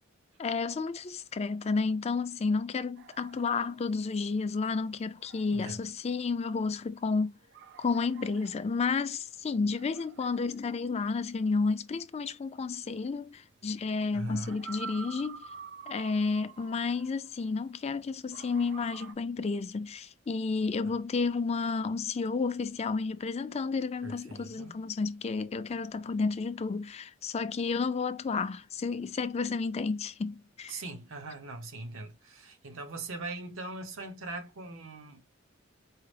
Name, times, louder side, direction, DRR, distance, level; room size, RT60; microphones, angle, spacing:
voice 1, 0.4-7.3 7.8-15.5 15.9-30.8, left 4 dB, 30° left, 0.4 m, -31 dB
sound 1, 3.0-17.9 18.3-19.1, right 6 dB, 60° right, 0.5 m, -49 dB
voice 2, 5.5-5.8 14.1-14.6 20.8-20.9 24.0-24.8 30.7-35.2, right 2 dB, 85° right, 0.9 m, -40 dB
4.6 x 2.0 x 3.3 m
head